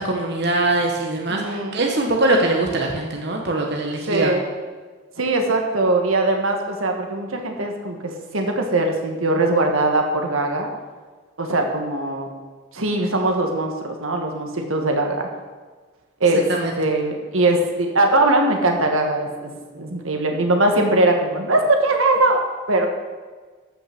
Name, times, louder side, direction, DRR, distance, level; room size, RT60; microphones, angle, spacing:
voice 1, 0.0-4.3 16.5-16.7, right 2 dB, 55° right, 1 dB, 1.3 m, -22 dB
voice 2, 1.3-1.8 4.1-4.5 5.2-10.7 11.4-12.3 12.7-15.2 16.2-16.5 16.8-22.9, right 2 dB, 85° right, 3 dB, 1.7 m, -21 dB
14.5 x 5.9 x 6.1 m, 1.4 s
head